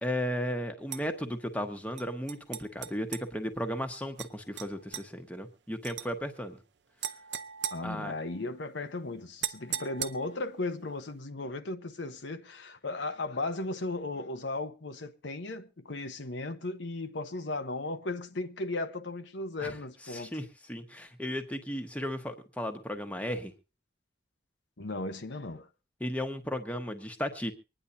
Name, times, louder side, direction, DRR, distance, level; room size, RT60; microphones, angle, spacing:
voice 1, 0.0-6.6 7.8-8.1 19.6-19.8 20.1-23.5 26.0-27.5, equal, 5° left, 1.2 m, -35 dB
sound 1, 0.9-1.0 2.0-3.3 4.2-4.3 4.6-5.1 5.8-6.1 7.0-8.5 9.4-10.5, right 10 dB, 75° right, 0.8 m, -38 dB
voice 2, 7.7-20.3 24.8-25.7, left 2 dB, 75° left, 1.0 m, -36 dB
25.0 x 10.0 x 2.7 m
head